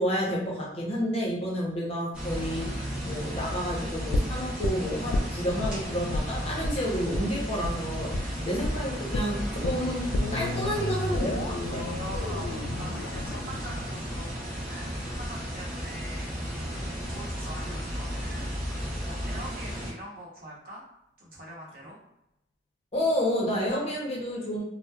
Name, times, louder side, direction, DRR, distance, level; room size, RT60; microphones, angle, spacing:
voice 1, 0.0-11.8 16.7-16.9 22.9-24.6, equal, 35° left, -3 dB, 0.7 m, -30 dB
sound 1, 2.1-19.9, equal, 5° right, 1.2 m, -34 dB
sound 2, 4.1-5.7 6.1-6.3 6.6-6.8 7.1-7.3 7.6-7.8 8.1-8.3 8.6-8.8 9.1-15.1 15.4-15.5, left 2 dB, 65° left, 0.3 m, -32 dB
voice 2, 8.1-8.6 11.7-20.8 21.2-22.0, equal, 55° right, -4 dB, 0.9 m, -44 dB
2.9 x 2.0 x 2.3 m, 0.86 s
head